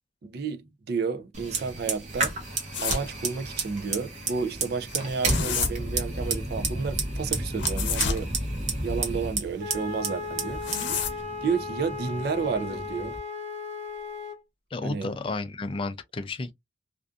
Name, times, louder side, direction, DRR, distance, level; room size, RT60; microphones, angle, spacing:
voice 1, 0.2-2.3 2.8-8.3 8.8-11.1 11.4-13.2 14.8-15.1, right 5 dB, 60° right, 0.4 m, -31 dB
Fire, 1.3-13.2, right 3 dB, 40° right, 0.8 m, -32 dB
sound 1, 2.7-3.1 4.9-5.7 7.6-8.2 10.4-11.2, left 6 dB, 80° left, 0.7 m, -29 dB
Wind instrument woodwind instrument, 9.6-14.4, left 4 dB, 90° right, 1.1 m, -36 dB
voice 2, 14.7-16.5, left 2 dB, 30° left, 0.3 m, -32 dB
2.5 x 2.4 x 2.3 m
head